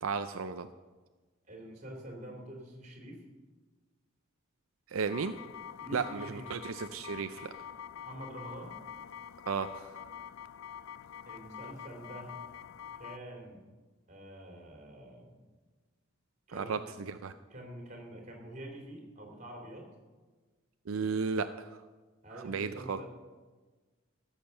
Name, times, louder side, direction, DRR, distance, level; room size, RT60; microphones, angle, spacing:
voice 1, 0.0-0.7 4.9-5.4 5.9-7.5 9.5-9.9 16.5-17.3 20.9-21.8 22.4-23.0, right 5 dB, 80° right, 9 dB, 0.5 m, -34 dB
voice 2, 1.4-3.2 5.8-6.4 8.0-8.8 11.3-12.4 12.9-13.6 14.1-15.4 16.5-16.9 17.5-19.9 22.2-23.1, right 1 dB, 35° right, 1 dB, 3.0 m, -46 dB
sound 1, 5.1-13.2, left 8 dB, 75° left, 0.4 m, -46 dB
15.0 x 7.4 x 6.6 m, 1.3 s
head